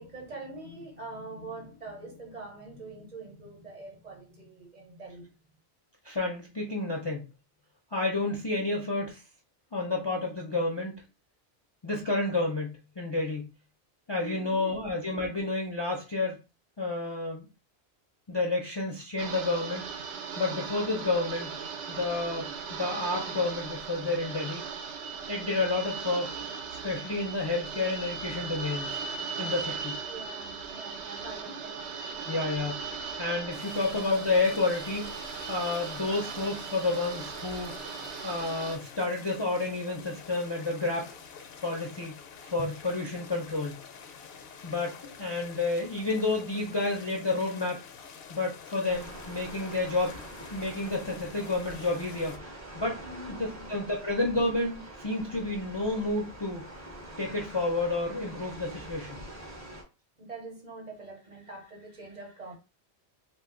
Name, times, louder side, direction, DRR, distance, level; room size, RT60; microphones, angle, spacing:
voice 1, 0.0-5.3 14.2-14.8 30.1-31.8 53.0-53.8 60.2-62.6, right 2 dB, 45° right, 0.9 m, -44 dB
voice 2, 6.0-7.3 7.9-9.2 9.7-11.0 11.8-13.5 14.1-16.4 16.8-17.5 18.3-21.6 21.9-22.5 22.8-24.6 25.3-26.4 26.8-29.0 29.4-29.9 32.3-32.9 33.2-35.1 35.5-37.9 38.2-41.1 41.6-42.2 42.4-43.8 44.6-47.8 48.3-50.2 50.5-53.0 53.4-56.6 57.2-59.2, left 2 dB, 35° left, 0.4 m, -30 dB
sound 1, 19.2-38.8, right 5 dB, 90° right, 0.9 m, -38 dB
sound 2, 33.5-52.4, left 6 dB, 70° left, 0.8 m, -48 dB
sound 3, 48.9-59.8, right 1 dB, 20° right, 0.6 m, -45 dB
2.5 x 2.3 x 3.7 m
omnidirectional pair, 1.1 m